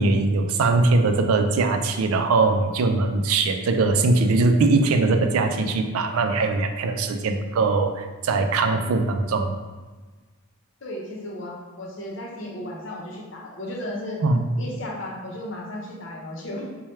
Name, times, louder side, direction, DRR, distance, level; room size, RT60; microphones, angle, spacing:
voice 1, 0.0-9.5 14.2-14.4, right 3 dB, 85° right, 6 dB, 0.4 m, -21 dB
voice 2, 10.8-14.2 14.6-16.7, left 1 dB, 60° left, -2 dB, 0.7 m, -34 dB
3.2 x 2.2 x 4.2 m, 1.3 s
head